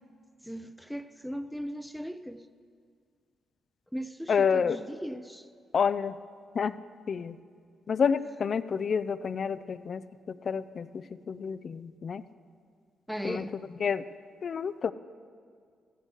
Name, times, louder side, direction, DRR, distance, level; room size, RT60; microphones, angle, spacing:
voice 1, 0.4-2.5 3.9-5.5 13.1-13.6, equal, ahead, 0.7 m, -38 dB
voice 2, 4.3-4.8 5.7-6.2 6.5-6.7 7.1-7.4 7.9-10.0 10.3-12.2 13.2-13.4 13.8-14.0 14.4-14.9, left 6 dB, 55° left, 0.5 m, -29 dB
14.0 x 9.2 x 7.8 m
supercardioid pair, 50°, 0 cm